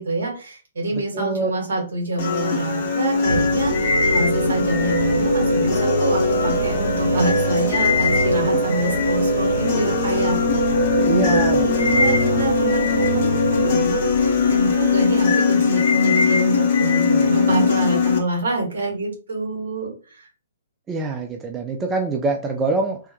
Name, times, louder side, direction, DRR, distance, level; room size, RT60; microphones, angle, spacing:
voice 1, 0.0-13.2 13.5-20.3, right 2 dB, 60° right, -1 dB, 2.1 m, -27 dB
voice 2, 0.9-1.5 11.0-12.4 20.9-23.0, right 3 dB, 20° right, 4 dB, 0.4 m, -25 dB
sound 1, 2.2-18.2, left 5 dB, 45° left, 0.9 m, -21 dB
sound 2, 3.2-15.2, right 2 dB, 90° right, 0.9 m, -24 dB
3.4 x 3.0 x 3.1 m, 0.36 s
figure-of-eight pair, 120°, 0 cm